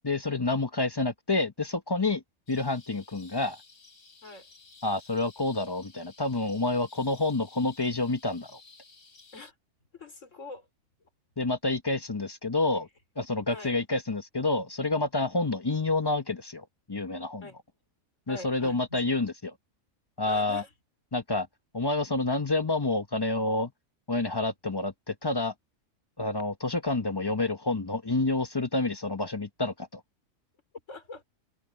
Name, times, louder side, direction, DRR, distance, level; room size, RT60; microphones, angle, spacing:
voice 1, 0.0-2.2 2.5-3.6 4.8-8.6 11.4-12.9 13.2-17.5 18.3-19.5 20.2-20.6 21.1-21.5 21.7-23.7 24.1-25.5 26.2-30.0, left 2 dB, 20° left, 0.7 m, -28 dB
sound 1, 2.5-9.5, left 4 dB, 80° left, 3.9 m, -55 dB
voice 2, 9.9-10.7 11.0-11.1 13.5-13.7 17.4-17.6 18.3-19.0 20.3-20.7 30.9-31.2, left 2 dB, 65° left, 4.3 m, -44 dB
omnidirectional pair, 1.4 m